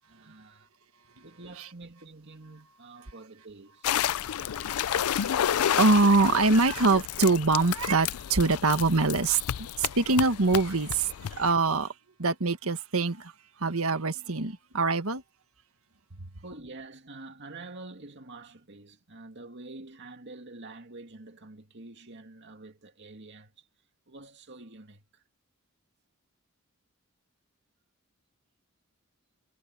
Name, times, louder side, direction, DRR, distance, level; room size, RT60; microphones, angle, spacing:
voice 1, 0.1-0.7 1.2-3.9 11.3-11.4 16.4-23.7 24.1-25.2, right 2 dB, 55° right, 2.4 m, -47 dB
sound 1, 3.8-11.5, left 10 dB, 85° left, 0.4 m, -31 dB
voice 2, 4.1-11.9 12.2-13.3 13.6-15.2 16.2-16.3, right 3 dB, 75° right, 1.6 m, -25 dB
head